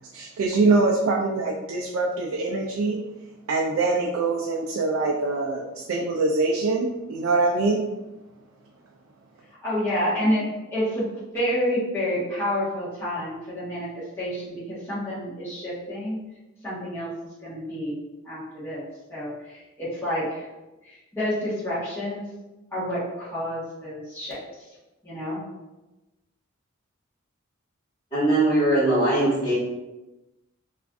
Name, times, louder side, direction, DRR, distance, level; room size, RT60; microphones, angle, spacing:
voice 1, 0.1-3.0 3.5-7.8, right 3 dB, 80° right, -1 dB, 0.4 m, -24 dB
voice 2, 9.6-11.0 11.3-16.2 16.6-17.1 17.4-18.8 19.1-20.5 20.8-22.2 22.7-24.7 25.0-25.4, equal, 10° left, -11 dB, 0.9 m, -29 dB
voice 3, 28.1-29.5, right 1 dB, 25° left, -10 dB, 1.3 m, -20 dB
2.5 x 2.3 x 3.4 m, 1.0 s
head